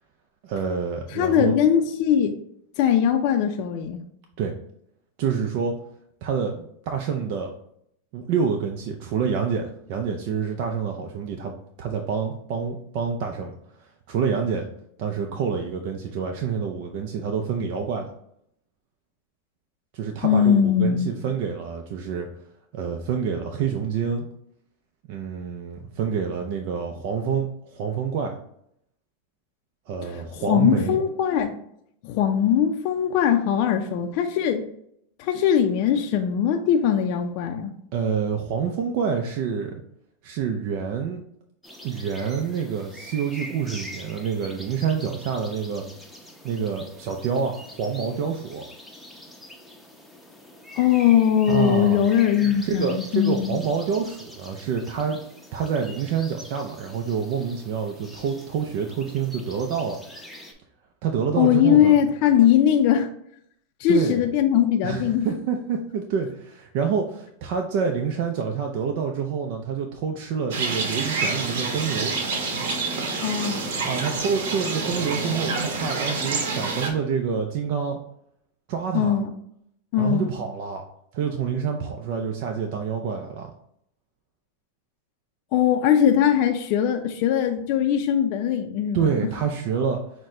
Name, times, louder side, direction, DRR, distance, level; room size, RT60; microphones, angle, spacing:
voice 1, 0.4-1.5 4.4-4.5 5.2-5.8 6.2-7.5 8.1-13.5 13.8-14.7 15.0-18.1 19.9-22.3 22.7-24.3 25.1-28.4 29.9-31.0 37.9-39.7 40.2-41.2 41.8-45.8 46.4-48.6 51.5-52.0 52.6-55.2 55.5-60.0 61.0-62.0 63.9-64.3 64.8-72.1 73.8-78.0 78.7-79.2 80.0-80.8 81.1-83.5 88.9-90.0, right 6 dB, 55° right, 3 dB, 0.5 m, -27 dB
voice 2, 1.1-2.4 2.8-4.0 20.2-21.1 30.0-31.6 32.0-34.6 35.2-37.7 50.7-53.6 61.4-63.1 63.8-65.3 73.2-73.7 78.9-79.3 79.9-80.3 85.5-89.1, left 9 dB, 55° left, 5 dB, 0.4 m, -21 dB
sound 1, 41.6-60.5, left 1 dB, ahead, 0.7 m, -44 dB
sound 2, 70.5-76.9, right 3 dB, 75° right, 0.9 m, -27 dB
6.1 x 2.2 x 3.7 m, 0.71 s
supercardioid pair, 125°, 0 cm